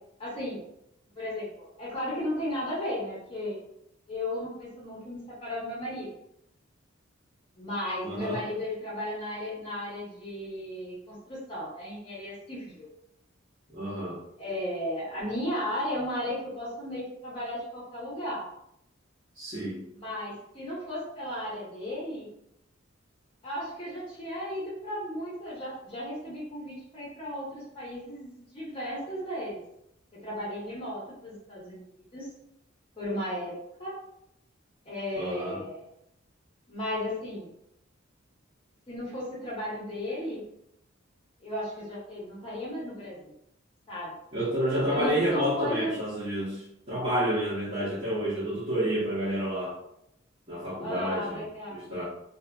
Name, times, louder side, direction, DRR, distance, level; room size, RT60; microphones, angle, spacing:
voice 1, 0.2-0.6 1.2-3.6 4.1-6.1 7.6-12.9 14.4-18.4 19.9-22.3 23.4-29.6 30.2-31.8 32.1-32.3 33.0-33.9 34.9-35.8 36.7-37.5 38.9-40.4 41.4-43.3 43.9-44.1 44.9-45.9 50.8-51.8, left 1 dB, 25° left, -7 dB, 0.7 m, -35 dB
voice 2, 8.0-8.4 13.7-14.2 19.4-19.8 35.1-35.6 44.3-49.7 50.5-51.4 51.7-52.0, equal, 30° right, -12 dB, 0.8 m, -29 dB
2.7 x 2.4 x 2.2 m, 0.79 s
head